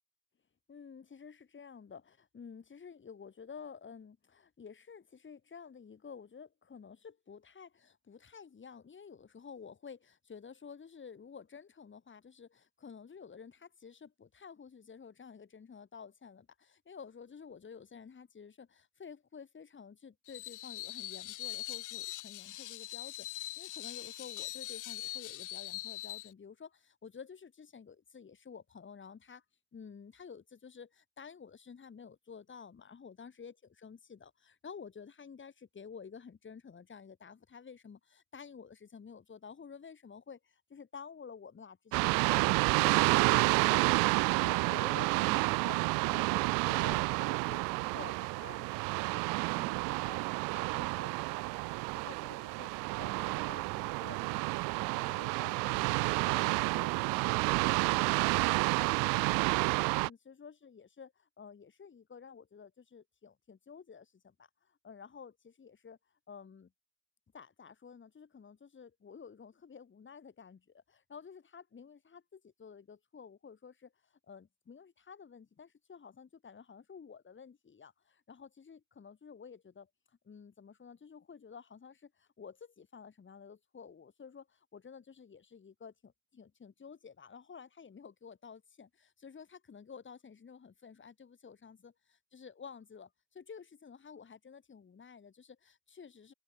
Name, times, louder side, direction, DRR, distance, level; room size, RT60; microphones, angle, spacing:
voice 1, 0.7-29.4 29.7-44.0 44.4-45.8 46.1-49.2 49.5-51.6 51.9-52.7 53.0-56.0 56.2-59.6 60.0-66.0 66.3-66.7 67.3-73.9 74.3-79.9 80.2-91.9 92.3-96.3, left 6 dB, 30° left, 2.8 m, -51 dB
Screech, 20.3-26.3, left 15 dB, 55° left, 1.3 m, -42 dB
sound 1, 41.9-60.1, right 29 dB, 65° right, 0.5 m, -30 dB
open air
hypercardioid pair, 55°, 36 cm